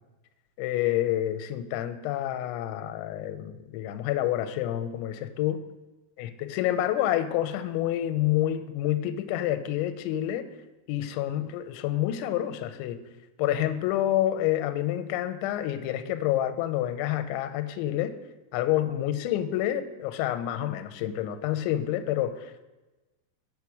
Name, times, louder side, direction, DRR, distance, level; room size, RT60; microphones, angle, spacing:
voice 1, 0.6-5.6 6.2-10.5 10.9-13.0 13.4-18.1 18.5-22.7, left 12 dB, 85° left, 10 dB, 2.9 m, -28 dB
7.3 x 5.9 x 4.6 m, 1.1 s
omnidirectional pair, 5.3 m